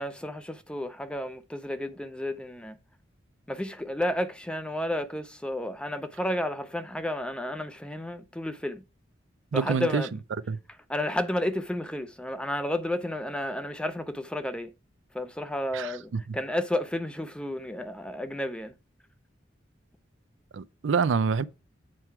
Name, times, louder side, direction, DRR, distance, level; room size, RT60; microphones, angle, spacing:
voice 1, 0.0-2.8 3.5-8.8 9.5-10.2 10.9-14.7 15.1-18.7, left 1 dB, 5° left, 0.5 m, -32 dB
voice 2, 9.5-10.0 10.5-10.6 15.7-16.2 20.5-21.4, right 5 dB, 85° right, 0.4 m, -26 dB
7.6 x 4.5 x 4.6 m
head